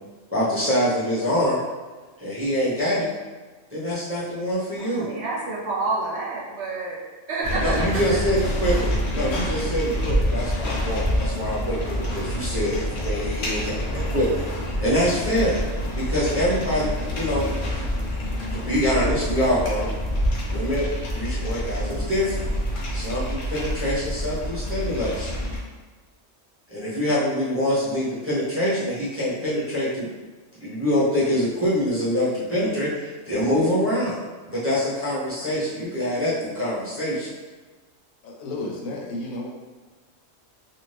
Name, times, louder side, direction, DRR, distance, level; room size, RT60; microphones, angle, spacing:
voice 1, 0.3-1.6 2.2-3.1 3.7-5.1 7.6-15.6 15.9-17.5 17.8-17.9 18.5-19.9 20.5-20.9 21.1-22.5 22.9-25.4 26.7-30.1 30.6-34.1 34.5-37.3, equal, 15° right, -10 dB, 0.5 m, -25 dB
voice 2, 4.7-8.2, right 3 dB, 65° right, -4 dB, 0.8 m, -29 dB
sound 1, 7.4-25.6, equal, 55° left, 0.6 m, -27 dB
voice 3, 38.2-39.5, left 2 dB, 90° left, -1 dB, 1.0 m, -32 dB
2.6 x 2.4 x 3.2 m, 1.3 s
omnidirectional pair, 1.4 m